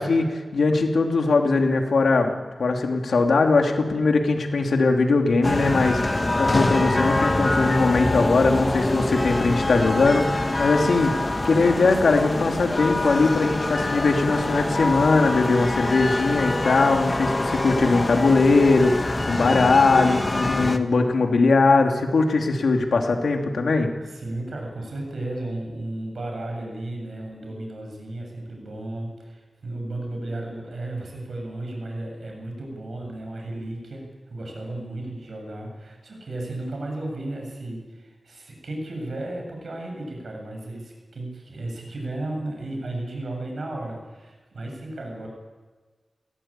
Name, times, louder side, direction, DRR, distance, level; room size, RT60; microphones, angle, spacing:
voice 1, 0.0-2.3 2.6-11.1 11.4-23.9, left 3 dB, 85° left, 3 dB, 2.8 m, -20 dB
sound 1, 5.4-20.8, left 2 dB, 30° left, 1.4 m, -25 dB
voice 2, 20.4-20.8 24.0-45.3, right 2 dB, 70° right, 1 dB, 7.6 m, -34 dB
20.5 x 17.5 x 9.0 m, 1.3 s
wide cardioid pair, 95°, 0 cm